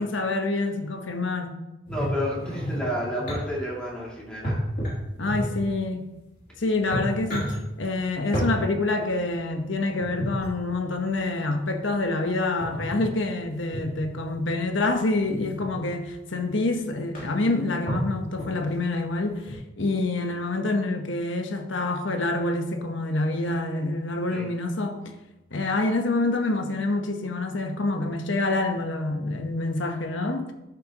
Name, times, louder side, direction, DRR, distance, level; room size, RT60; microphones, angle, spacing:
voice 1, 0.0-1.5 5.2-6.1 6.6-25.0 25.5-30.5, left 2 dB, 75° left, 1.1 m, -27 dB
sound 1, 1.9-3.4 4.4-5.7 6.4-6.5 6.8-7.6 8.3-8.5 10.0-10.5 12.6-13.1 13.7-14.1 15.1-15.7 16.4-16.5 16.8-16.9 17.1-17.5 17.9-18.7 19.4-19.5, equal, 45° left, 3.0 m, -30 dB
voice 2, 1.9-4.6 24.3-24.5, equal, 5° left, 2.6 m, -31 dB
11.0 x 7.8 x 3.0 m
head